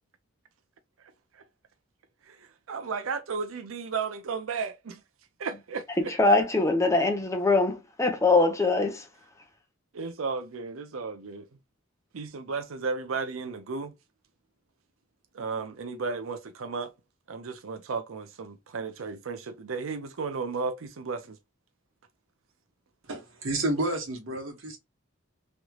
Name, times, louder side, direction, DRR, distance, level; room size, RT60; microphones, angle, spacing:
voice 1, 2.3-5.0 5.4-6.1 9.9-11.5 12.1-13.9 15.3-16.9 17.3-21.4, right 4 dB, 90° right, 0.6 m, -34 dB
voice 2, 6.1-9.1, left 3 dB, 15° left, 0.7 m, -23 dB
voice 3, 23.1-24.8, right 1 dB, 75° right, 1.4 m, -30 dB
3.2 x 3.0 x 2.3 m
head